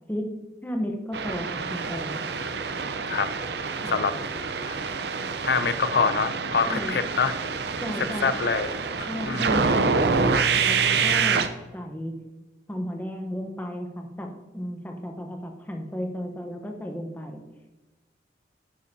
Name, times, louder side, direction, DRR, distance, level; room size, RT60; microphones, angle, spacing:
voice 1, 0.6-2.2 3.7-3.9 6.7-6.9 7.8-8.3 9.1-12.2 12.7-17.4, equal, 10° left, 2 dB, 1.0 m, -34 dB
sound 1, 1.1-11.5, right 5 dB, 70° right, 0.6 m, -26 dB
voice 2, 5.4-7.4 8.0-9.5, left 5 dB, 70° left, 12 dB, 0.5 m, -26 dB
10.5 x 8.9 x 2.8 m, 1.2 s
head